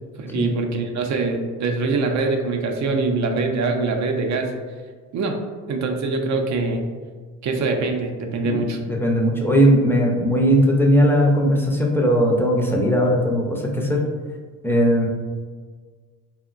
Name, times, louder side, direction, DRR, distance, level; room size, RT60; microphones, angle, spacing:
voice 1, 0.2-4.5 5.1-5.4 5.7-6.9 7.4-8.8, right 3 dB, 45° right, 4 dB, 0.5 m, -23 dB
voice 2, 8.4-14.0 14.6-15.1, equal, 5° left, -2 dB, 0.5 m, -18 dB
3.6 x 2.1 x 2.4 m, 1.5 s
supercardioid pair, 70°, 41 cm